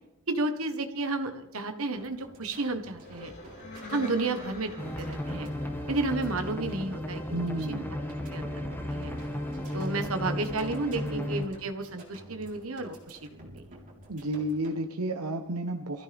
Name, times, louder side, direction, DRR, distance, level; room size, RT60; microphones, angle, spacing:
voice 1, 0.3-3.3 3.9-5.5 5.9-7.8 8.3-9.1 9.7-13.7, right 2 dB, 70° right, 7 dB, 1.4 m, -32 dB
sound 1, 1.9-14.7, right 1 dB, 40° right, 4.0 m, -51 dB
sound 2, 2.9-6.6 7.9-12.6, left 2 dB, 55° left, 3.6 m, -48 dB
sound 3, 4.8-11.4, left 1 dB, 10° left, 1.8 m, -34 dB
voice 2, 7.3-8.0 11.0-11.2 14.1-16.0, right 1 dB, 85° right, 5 dB, 1.0 m, -32 dB
23.5 x 14.5 x 3.5 m, 0.91 s
head